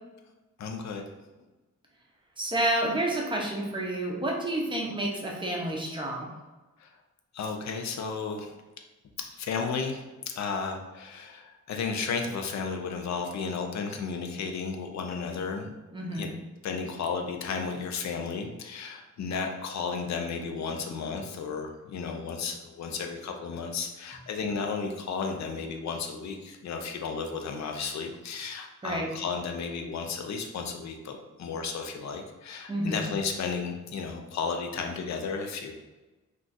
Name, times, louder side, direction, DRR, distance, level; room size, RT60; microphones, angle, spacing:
voice 1, 0.6-1.3 6.8-6.9 7.3-8.6 9.3-15.7 16.1-16.3 16.6-35.8, left 5 dB, 65° left, 4 dB, 0.5 m, -33 dB
voice 2, 2.4-6.3 15.9-16.3 28.8-29.1 32.7-33.0, right 1 dB, 15° right, -1 dB, 0.5 m, -29 dB
2.4 x 2.3 x 3.9 m, 1.2 s
wide cardioid pair, 165°, 31 cm